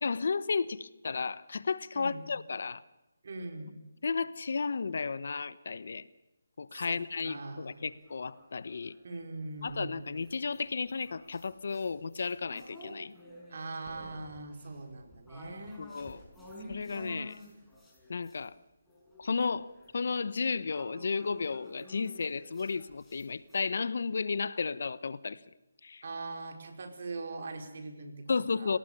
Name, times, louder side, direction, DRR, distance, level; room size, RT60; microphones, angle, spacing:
voice 1, 0.0-2.8 4.0-6.0 6.6-8.9 9.6-13.1 15.8-16.2 16.7-17.4 18.1-18.5 19.2-25.4 25.8-26.0 28.3-28.8, left 4 dB, 60° left, 18 dB, 1.0 m, -33 dB
voice 2, 3.2-3.8 6.8-7.8 9.0-10.1 13.5-15.8 26.0-28.3 28.6-28.8, right 3 dB, 55° right, 5 dB, 4.7 m, -41 dB
sound 1, 7.7-9.0 9.6-18.5 18.9-23.6, equal, 5° left, 5.7 m, -51 dB
28.0 x 18.0 x 6.9 m, 0.99 s
figure-of-eight pair, 155°, 0 cm